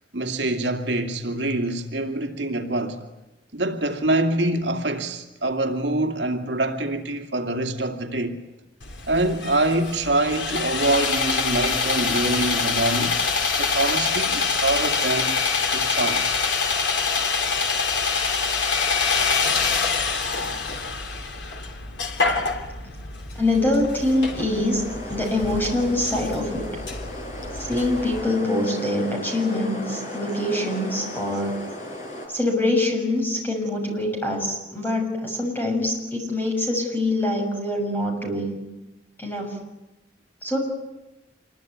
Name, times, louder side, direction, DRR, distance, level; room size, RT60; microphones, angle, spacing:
voice 1, 0.0-3.0 3.5-8.4 9.1-13.1 13.6-15.4 15.7-16.4, right 2 dB, 70° right, 2.5 m, -25 dB
Sawing, 8.8-28.2, left 4 dB, 75° left, 3.1 m, -25 dB
voice 2, 23.3-24.8 25.1-26.7 27.6-31.5 32.3-38.6 39.2-39.6 40.4-40.6, left 1 dB, 10° left, 6.7 m, -24 dB
sound 1, 23.6-32.3, left 1 dB, 40° left, 5.9 m, -36 dB
27.0 x 22.5 x 9.5 m
head